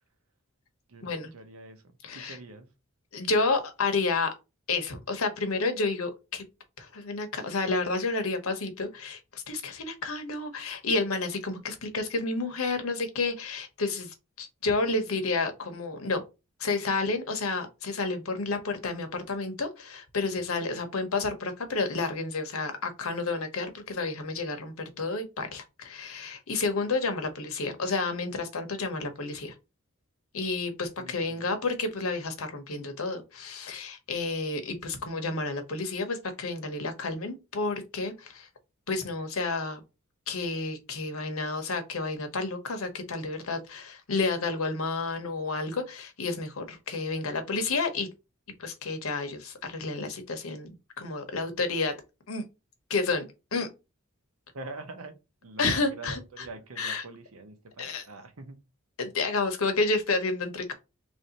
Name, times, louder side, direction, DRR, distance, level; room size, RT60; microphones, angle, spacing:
voice 1, 0.9-2.7 31.0-31.5 54.5-55.2 55.4-58.6, right 2 dB, 85° right, 0.8 m, -44 dB
voice 2, 2.0-2.4 3.1-4.3 4.7-6.4 6.8-16.2 16.6-29.5 30.3-38.5 38.9-39.8 40.3-48.1 48.6-50.7 51.0-51.9 52.3-52.4 52.9-53.2 53.5-53.7 55.6-56.5 56.8-57.0 57.8-58.0 59.0-60.7, left 3 dB, 85° left, 0.9 m, -30 dB
3.2 x 2.7 x 4.0 m
head